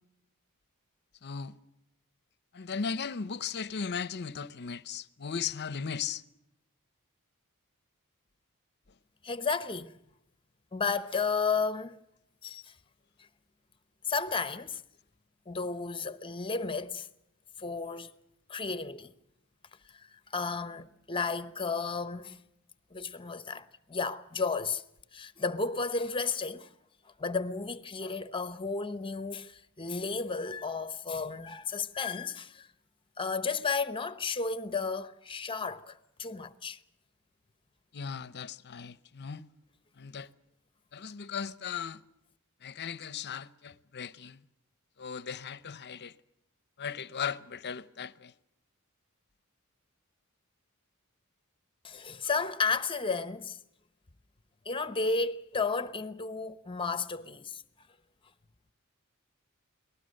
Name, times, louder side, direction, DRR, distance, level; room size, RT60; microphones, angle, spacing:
voice 1, 1.2-1.6 2.5-6.2 37.9-39.5 40.0-40.3 40.9-42.0 42.6-44.4 45.0-46.1 46.8-48.3, left 6 dB, 50° left, 0.8 m, -37 dB
voice 2, 9.2-10.0 10.7-12.0 12.4-12.7 14.1-14.8 15.5-17.1 17.6-18.1 18.5-19.1 19.9-22.4 22.9-24.8 25.1-26.7 27.2-32.7 33.2-36.8 51.8-53.6 54.6-57.6, left 4 dB, 25° left, 1.0 m, -33 dB
29.0 x 19.5 x 6.5 m
head